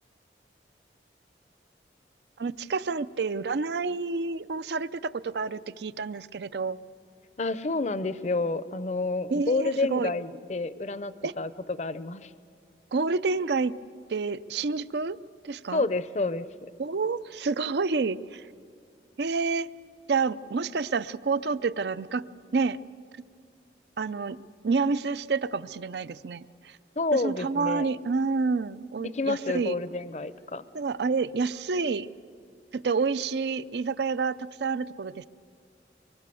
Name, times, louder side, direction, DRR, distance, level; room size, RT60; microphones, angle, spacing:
voice 1, 2.4-6.8 9.3-10.1 11.2-11.3 12.9-13.7 14.1-15.2 15.4-15.9 16.8-18.4 19.2-19.7 20.1-22.2 22.5-22.8 24.0-24.4 24.6-26.8 27.1-29.7 30.7-32.1 32.7-35.3, right 4 dB, 70° right, 15 dB, 0.5 m, -28 dB
voice 2, 7.4-12.3 15.7-16.5 27.0-27.9 29.1-30.6, left 3 dB, 40° left, 15 dB, 0.6 m, -29 dB
24.5 x 23.5 x 6.9 m, 2.2 s
head